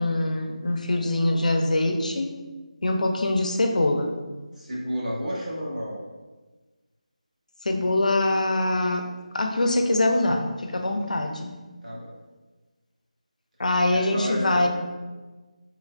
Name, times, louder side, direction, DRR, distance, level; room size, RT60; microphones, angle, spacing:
voice 1, 0.0-2.3 2.8-4.1 7.6-9.1 9.3-11.6 13.6-14.7, left 2 dB, 80° left, 4 dB, 0.4 m, -23 dB
voice 2, 4.5-6.0 11.8-12.1 13.9-14.7, equal, 80° right, -6 dB, 1.1 m, -31 dB
3.1 x 2.4 x 2.2 m, 1.3 s
figure-of-eight pair, 175°, 4 cm